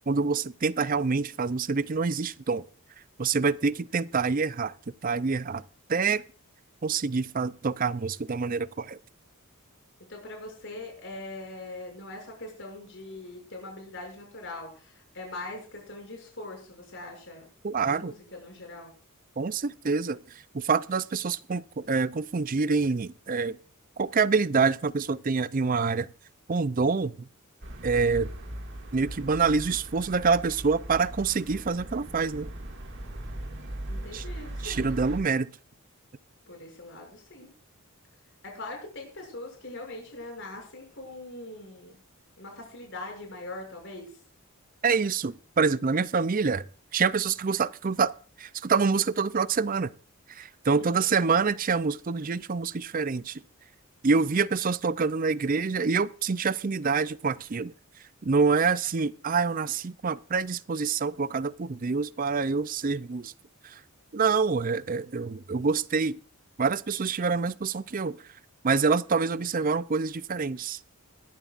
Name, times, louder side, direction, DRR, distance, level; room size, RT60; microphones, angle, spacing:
voice 1, 0.1-2.6 3.2-4.7 5.0-5.6 5.9-6.2 6.8-9.0 17.6-18.1 19.4-20.2 20.5-23.6 24.0-26.1 26.5-27.1 27.8-28.3 28.9-32.5 34.1-34.2 34.6-35.5 44.8-46.6 46.9-48.1 48.4-49.9 50.3-53.4 54.0-57.7 58.2-63.3 63.6-63.8 64.1-66.2 66.6-68.2 68.6-70.8, right 4 dB, 40° right, 0.5 m, -26 dB
voice 2, 10.0-17.5 17.7-18.9 33.9-34.9 36.5-37.5 38.4-42.0 42.4-44.2 50.8-51.3, left 2 dB, 55° left, 6.9 m, -42 dB
sound 1, 27.6-35.2, right 1 dB, 55° right, 2.1 m, -39 dB
21.5 x 11.0 x 2.5 m
head